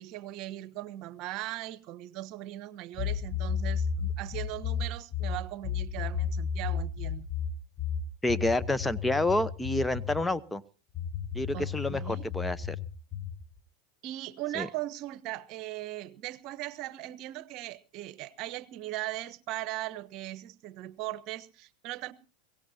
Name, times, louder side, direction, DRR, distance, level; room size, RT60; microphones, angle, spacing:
voice 1, 0.0-7.3 11.5-12.3 14.0-22.1, right 15 dB, 50° right, 1.1 m, -39 dB
sound 1, 3.0-10.3 10.9-13.4, left 7 dB, 30° left, 1.6 m, -33 dB
voice 2, 8.2-10.6 11.3-12.8 14.5-14.7, left 2 dB, 10° left, 0.9 m, -29 dB
23.0 x 17.5 x 2.8 m
hypercardioid pair, 95°, 0 cm